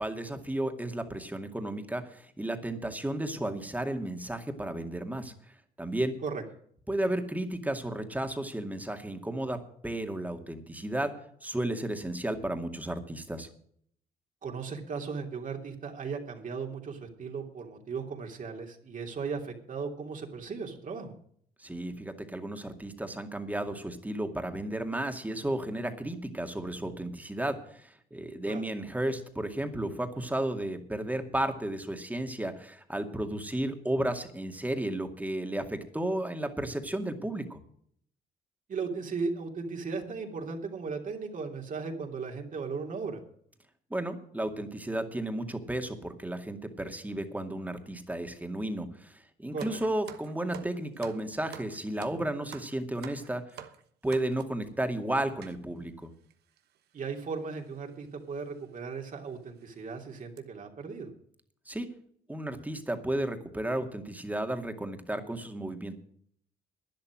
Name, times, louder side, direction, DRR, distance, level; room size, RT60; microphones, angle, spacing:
voice 1, 0.0-5.3 5.8-6.1 6.9-11.1 11.4-13.5 21.6-37.6 43.9-53.5 54.0-56.1 61.7-61.9 62.3-66.0, right 1 dB, 10° right, 6 dB, 2.2 m, -33 dB
voice 2, 14.4-21.1 28.5-28.7 38.7-43.2 49.5-49.8 56.9-61.1, right 5 dB, 50° right, 2 dB, 2.9 m, -36 dB
sound 1, 49.6-54.7 55.4-55.6 56.3-56.4 56.6-56.8 57.7-57.9 58.4-58.5 59.0-59.1 59.6-59.8 60.2-60.4, right 10 dB, 80° right, 1.3 m, -48 dB
12.0 x 10.5 x 6.2 m, 0.62 s
cardioid pair, 80°, 17 cm